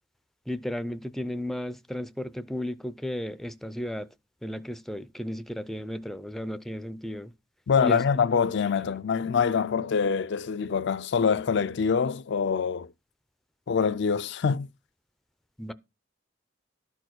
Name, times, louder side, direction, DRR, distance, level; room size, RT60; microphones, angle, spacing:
voice 1, 0.5-4.1 4.4-7.3 7.8-8.1 15.6-15.7, equal, ahead, 0.4 m, -34 dB
voice 2, 7.7-12.9 13.7-14.7, left 6 dB, 65° left, 0.4 m, -25 dB
12.0 x 4.6 x 6.2 m
head